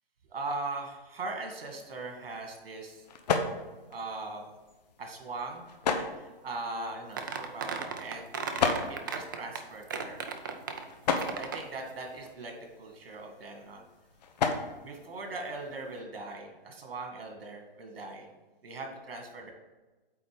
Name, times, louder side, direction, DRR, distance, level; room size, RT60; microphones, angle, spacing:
voice 1, 0.3-3.1 3.9-4.5 5.0-5.6 5.9-8.3 8.9-10.2 11.1-13.8 14.8-18.3 18.6-19.5, right 3 dB, 75° right, 3 dB, 2.1 m, -40 dB
sound 1, 1.6-16.0, left 5 dB, 45° left, 0.8 m, -37 dB
sound 2, 7.2-9.6 9.9-11.7, right 5 dB, 20° right, 0.4 m, -35 dB
8.5 x 3.8 x 5.1 m, 1.2 s
hypercardioid pair, 155°, 29 cm